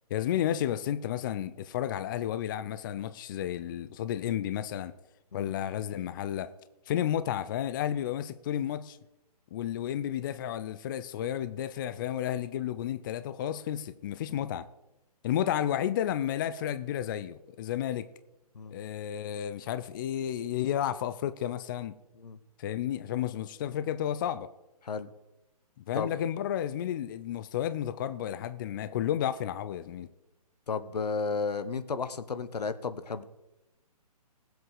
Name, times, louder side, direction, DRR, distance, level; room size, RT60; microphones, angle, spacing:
voice 1, 0.1-4.9 5.3-6.5 6.9-9.0 9.5-14.7 15.2-18.1 18.7-22.0 22.6-24.5 25.9-30.1, left 10 dB, 30° left, 0.5 m, -32 dB
voice 2, 30.7-33.2, left 5 dB, 80° left, 1.2 m, -33 dB
19.0 x 8.0 x 4.8 m
hypercardioid pair, 150°, 20 cm